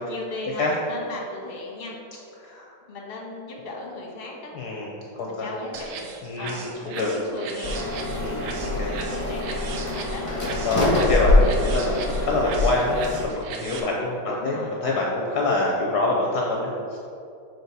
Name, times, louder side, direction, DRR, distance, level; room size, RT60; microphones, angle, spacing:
voice 1, 0.0-2.0 2.9-4.5 5.3-8.0 8.5-10.3 14.3-14.8, left 2 dB, 35° left, -2 dB, 1.2 m, -37 dB
voice 2, 4.5-5.5 6.2-7.1 8.1-8.5 8.8-8.9 10.6-17.0, left 2 dB, 65° left, -2 dB, 1.2 m, -26 dB
sound 1, 5.7-13.8, right 5 dB, 85° right, 1.4 m, -38 dB
sound 2, 7.6-13.2, left 2 dB, 20° left, 1.4 m, -24 dB
6.7 x 4.6 x 4.0 m, 2.6 s
omnidirectional pair, 2.0 m